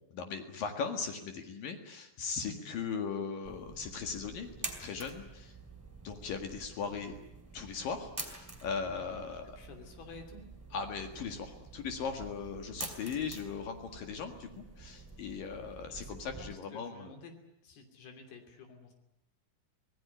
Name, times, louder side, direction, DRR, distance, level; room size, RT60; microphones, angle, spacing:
voice 1, 0.0-5.5 6.0-7.2 7.5-9.5 10.7-17.1, left 5 dB, 65° left, 5 dB, 3.4 m, -38 dB
sound 1, 3.4-16.5, right 3 dB, 5° right, 3.2 m, -47 dB
voice 2, 8.9-9.2 9.6-10.4 15.9-17.3 17.6-18.9, left 4 dB, 85° left, 6 dB, 5.0 m, -51 dB
26.0 x 18.0 x 10.0 m, 0.85 s
omnidirectional pair, 4.3 m